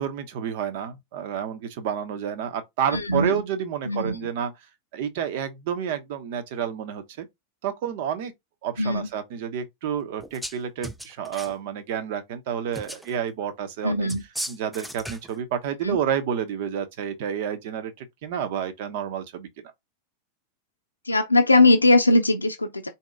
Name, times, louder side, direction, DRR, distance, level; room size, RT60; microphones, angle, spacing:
voice 1, 0.0-4.5 4.9-7.3 7.6-8.3 8.6-14.1 14.5-19.5, right 8 dB, 50° right, 0.9 m, -30 dB
voice 2, 2.9-3.4 3.8-4.2 8.8-9.1 13.8-14.2 15.8-16.0 21.0-22.9, left 2 dB, 85° left, 0.6 m, -20 dB
sound 1, 10.2-10.6 10.8-11.6 12.7-13.1 14.1-15.4, equal, ahead, 0.4 m, -36 dB
4.5 x 2.8 x 3.6 m
figure-of-eight pair, 90°, 0 cm